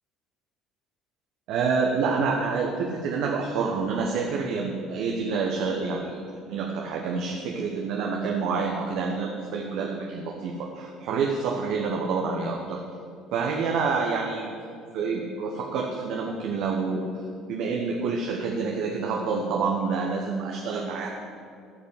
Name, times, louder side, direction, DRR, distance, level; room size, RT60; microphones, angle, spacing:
voice 1, 1.5-12.8 13.3-14.5 14.9-17.2 17.5-21.1, right 4 dB, 55° right, 0 dB, 1.1 m, -28 dB
13.5 x 5.4 x 8.3 m, 2.3 s
figure-of-eight pair, 55°, 0 cm